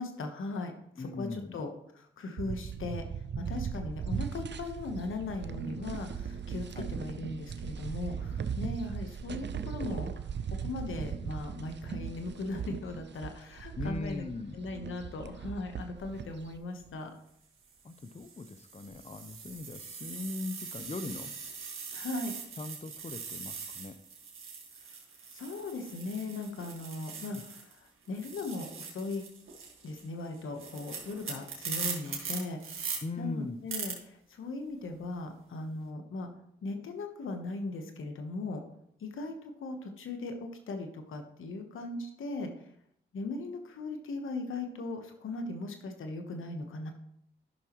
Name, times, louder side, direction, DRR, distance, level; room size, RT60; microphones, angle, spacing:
voice 1, 0.0-3.0 3.4-10.3 10.6-14.2 14.5-17.1 21.9-22.3 25.3-29.2 29.8-36.3 36.6-38.6 39.0-42.5 43.1-46.9, left 2 dB, 90° left, 5 dB, 1.1 m, -38 dB
voice 2, 1.0-1.6 6.7-6.9 13.8-14.6 17.8-21.3 22.6-23.9 27.3-27.4 33.0-33.6, left 3 dB, 30° left, 11 dB, 0.7 m, -39 dB
sound 1, 2.4-16.6, right 7 dB, 60° right, 0.6 m, -38 dB
sound 2, 16.6-16.9 17.6-27.8 28.1-33.0 33.7-33.9, right 6 dB, 85° right, 1.7 m, -41 dB
12.0 x 5.9 x 3.0 m, 0.74 s
cardioid pair, 45°, 20 cm